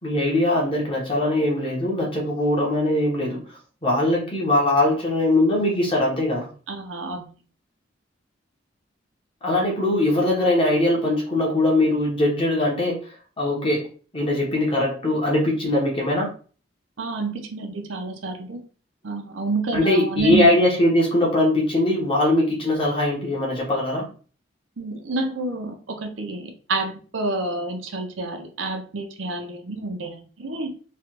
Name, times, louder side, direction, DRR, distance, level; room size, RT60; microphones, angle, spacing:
voice 1, 0.0-3.4 3.8-6.5 9.4-13.9 14.1-16.3 19.7-24.0, left 1 dB, 30° left, -3 dB, 1.0 m, -21 dB
voice 2, 6.7-7.3 17.0-18.6 19.0-20.5 24.8-30.7, right 2 dB, 85° right, 4 dB, 0.7 m, -29 dB
3.1 x 2.4 x 3.0 m, 0.40 s
head